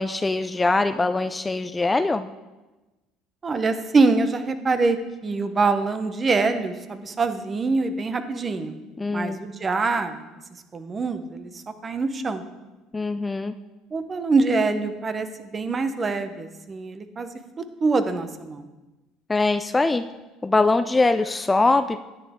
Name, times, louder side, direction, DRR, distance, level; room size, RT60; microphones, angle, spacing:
voice 1, 0.0-2.3 9.0-9.4 12.9-13.5 19.3-20.1 20.4-22.0, left 3 dB, 20° left, 12 dB, 0.4 m, -22 dB
voice 2, 3.4-8.8 9.1-10.2 10.7-12.4 13.9-17.3 17.8-18.7, right 3 dB, 30° right, 10 dB, 0.9 m, -24 dB
10.0 x 9.2 x 3.6 m, 1.1 s
hypercardioid pair, 70°, 0 cm